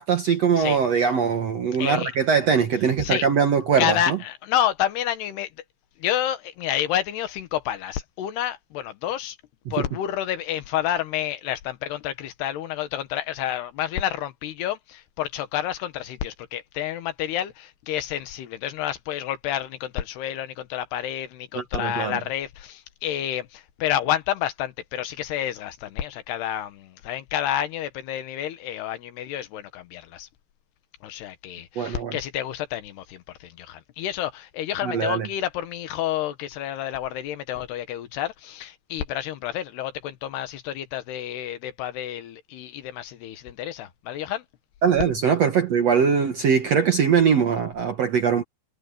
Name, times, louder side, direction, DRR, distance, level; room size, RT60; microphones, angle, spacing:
voice 1, 0.0-4.2 21.5-22.2 31.7-32.1 34.8-35.3 44.8-48.4, right 6 dB, 60° right, 1.8 m, -21 dB
voice 2, 0.6-1.1 1.8-2.1 3.0-3.3 3.8-5.5 6.0-9.4 9.7-30.3 31.0-44.5, left 11 dB, 80° left, 3.5 m, -29 dB
omnidirectional pair, 4.7 m